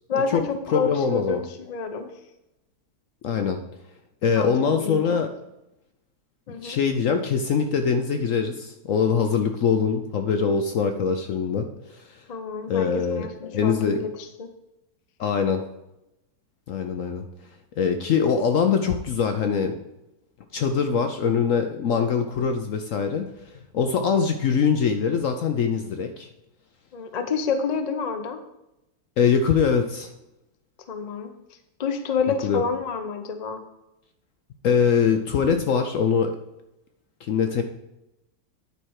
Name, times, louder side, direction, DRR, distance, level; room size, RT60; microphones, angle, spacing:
voice 1, 0.1-2.1 4.4-5.2 6.5-6.8 12.3-14.5 26.9-28.4 30.9-31.3 31.8-33.6, left 5 dB, 50° left, 7 dB, 0.5 m, -29 dB
voice 2, 0.7-1.4 3.2-3.6 4.2-5.3 6.5-12.1 12.7-13.3 13.5-14.0 15.2-15.6 16.7-17.2 17.8-19.8 20.5-23.2 23.7-26.3 29.2-30.1 32.4-32.6 34.6-36.3 37.2-37.6, left 6 dB, 65° left, 6 dB, 0.8 m, -23 dB
9.9 x 4.3 x 4.7 m, 0.88 s
omnidirectional pair, 1.8 m